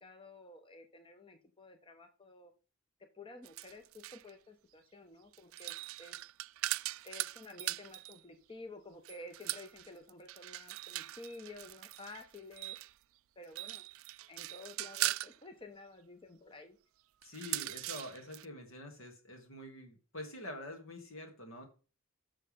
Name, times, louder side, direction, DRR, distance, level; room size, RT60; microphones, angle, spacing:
voice 1, 0.0-2.5 3.1-6.2 7.0-12.8 13.4-13.8 14.3-16.8, left 2 dB, 25° left, 6 dB, 0.8 m, -52 dB
sound 1, 3.4-4.3 5.3-8.2 9.0-12.9 13.4-15.4 17.2-18.4, right 17 dB, 75° right, 0.3 m, -40 dB
voice 2, 17.2-21.7, left 1 dB, 80° left, 4 dB, 2.5 m, -46 dB
10.5 x 6.7 x 3.6 m, 0.35 s
head